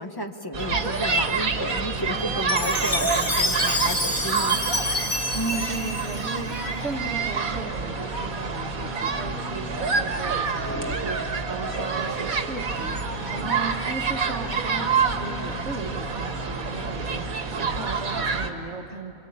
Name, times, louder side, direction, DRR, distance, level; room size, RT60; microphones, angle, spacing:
voice 1, 0.0-4.6, left 1 dB, 15° left, 4 dB, 1.3 m, -32 dB
sound 1, 0.5-18.5, right 4 dB, 90° right, 2.0 m, -27 dB
sound 2, 1.0-18.3, left 3 dB, 60° left, 2.4 m, -43 dB
Chime, 2.5-6.8, left 1 dB, 40° left, 2.7 m, -27 dB
voice 2, 5.3-11.2 11.5-17.2 17.5-19.1, right 3 dB, 60° right, 5 dB, 1.7 m, -35 dB
26.5 x 24.0 x 8.6 m, 3.0 s
omnidirectional pair, 1.4 m